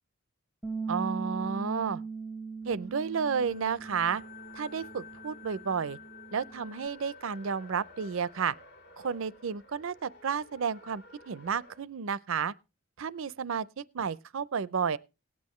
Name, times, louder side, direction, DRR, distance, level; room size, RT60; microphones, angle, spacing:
Bass guitar, 0.6-6.9, right 4 dB, 5° left, 0.7 m, -40 dB
voice 1, 0.9-2.0 2.6-4.2 4.5-6.0 6.3-8.5 9.0-12.5 13.0-15.0, right 6 dB, 65° right, 0.5 m, -32 dB
Race car auto racing, 2.6-11.8, left 1 dB, 55° left, 1.7 m, -55 dB
sound 1, 3.3-9.8, left 10 dB, 40° left, 0.9 m, -53 dB
18.5 x 8.5 x 3.1 m
head